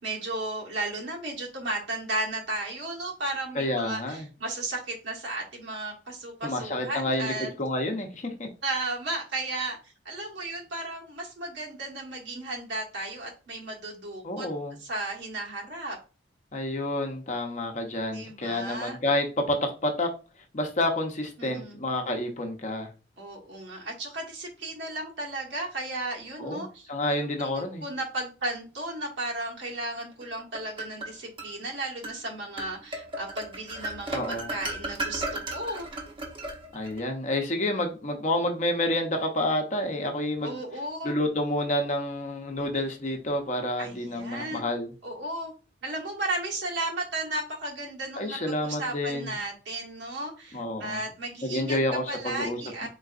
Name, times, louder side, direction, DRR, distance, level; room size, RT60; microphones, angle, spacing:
voice 1, 0.0-7.5 8.6-9.8 10.0-14.5 14.8-16.0 18.1-19.0 21.4-21.8 23.2-26.9 27.4-27.5 27.8-35.9 40.4-41.2 43.8-44.7 45.0-45.5 45.8-52.9, right 2 dB, 80° right, -1 dB, 1.3 m, -34 dB
voice 2, 3.5-4.3 6.4-8.5 14.2-14.8 16.5-20.1 20.5-22.9 26.4-27.8 34.1-34.5 36.7-40.6 41.0-44.9 48.2-49.3 50.5-51.0 51.4-52.9, left 1 dB, 40° left, 3 dB, 0.7 m, -29 dB
sound 1, 30.2-31.5 32.0-32.2 32.6-37.0, right 2 dB, 30° right, 0.7 m, -35 dB
3.9 x 3.7 x 2.4 m, 0.34 s
head